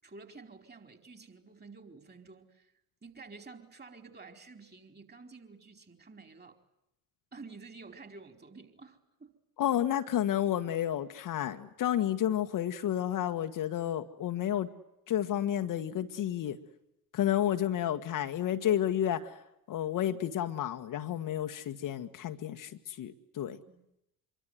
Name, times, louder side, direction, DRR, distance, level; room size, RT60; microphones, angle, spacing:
voice 1, 0.0-2.7 3.0-6.6 7.3-9.3 17.3-17.6 23.7-23.8, right 4 dB, 20° right, 4.6 m, -51 dB
voice 2, 9.6-14.7 15.1-16.6 17.1-19.4 19.7-23.6, left 11 dB, 45° left, 1.7 m, -31 dB
26.5 x 23.5 x 9.6 m
figure-of-eight pair, 55°, 44 cm